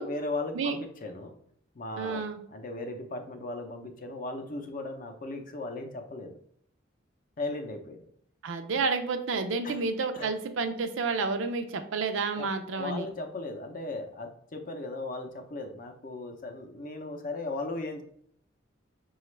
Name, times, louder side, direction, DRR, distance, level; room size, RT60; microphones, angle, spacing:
voice 1, 0.0-1.3 1.7-6.4 7.4-8.0 9.6-9.8 10.1-10.3 12.4-18.0, left 2 dB, 45° left, 5 dB, 0.6 m, -37 dB
voice 2, 2.0-2.4 8.4-13.1, right 4 dB, 75° right, 8 dB, 0.5 m, -30 dB
5.8 x 2.3 x 3.1 m, 0.66 s
head